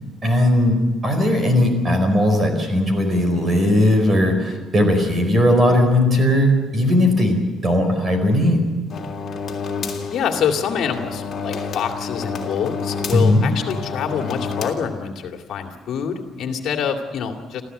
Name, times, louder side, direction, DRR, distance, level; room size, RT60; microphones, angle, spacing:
voice 1, 0.2-8.6 13.1-13.4, left 1 dB, 25° right, 6 dB, 4.7 m, -18 dB
sound 1, 8.9-14.7, left 5 dB, 40° left, 3.1 m, -29 dB
voice 2, 10.1-17.6, left 7 dB, 60° left, 4 dB, 2.3 m, -26 dB
26.5 x 15.0 x 8.0 m, 1.2 s
cardioid pair, 150°, 0 cm